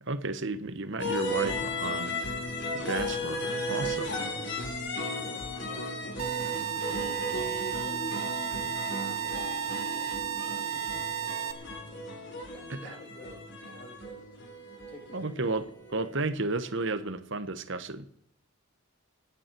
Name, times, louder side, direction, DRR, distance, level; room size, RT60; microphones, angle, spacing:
voice 1, 0.0-2.2 2.7-4.1 12.7-12.8 15.1-18.0, right 3 dB, 55° right, 11 dB, 1.3 m, -33 dB
sound 1, 1.0-16.8, left 1 dB, 55° left, 4.0 m, -35 dB
voice 2, 5.1-8.7 9.2-13.4 13.7-14.3 14.9-15.3, left 1 dB, 25° left, 1 dB, 3.7 m, -51 dB
sound 2, 6.2-11.5, right 10 dB, 85° right, 1.8 m, -33 dB
27.0 x 9.8 x 4.6 m, 0.70 s
head